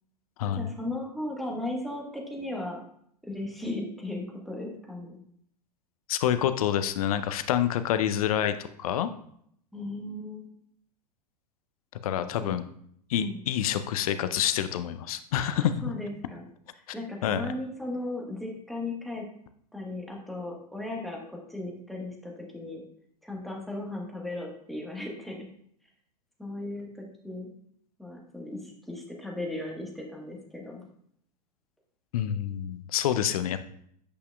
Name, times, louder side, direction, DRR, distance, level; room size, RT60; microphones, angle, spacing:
voice 1, 0.4-2.8 3.2-5.2 9.7-10.5 12.1-12.5 13.2-13.4 15.6-16.4 16.9-19.3 19.7-21.2 21.5-22.8 23.2-25.4 26.4-27.5 28.0-30.8, left 2 dB, ahead, -1 dB, 1.2 m, -36 dB
voice 2, 6.1-9.1 12.0-12.6 13.1-15.7 17.2-17.4 32.1-33.6, left 10 dB, 60° left, 12 dB, 0.5 m, -27 dB
8.2 x 5.5 x 2.3 m, 0.67 s
figure-of-eight pair, 95°, 21 cm